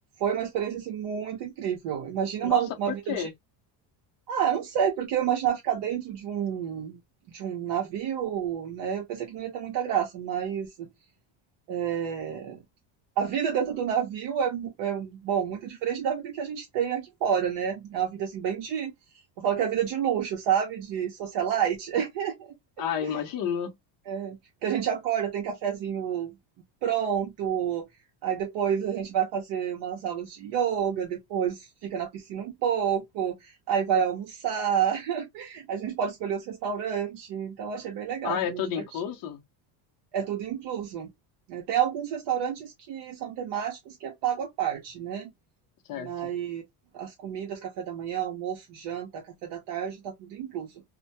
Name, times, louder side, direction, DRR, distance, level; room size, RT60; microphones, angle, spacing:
voice 1, 0.2-3.3 4.3-7.0 7.3-10.9 11.7-12.6 13.2-18.9 19.4-22.5 23.0-23.1 24.1-26.3 26.8-27.8 28.2-38.6 40.1-41.1 41.5-45.3 45.9-46.6 46.9-50.7, right 8 dB, 55° right, 0.7 m, -29 dB
voice 2, 22.8-23.8 38.2-39.4 45.9-46.3, left 8 dB, 45° left, 0.7 m, -30 dB
2.2 x 2.1 x 2.7 m
cardioid pair, 150°, 50 cm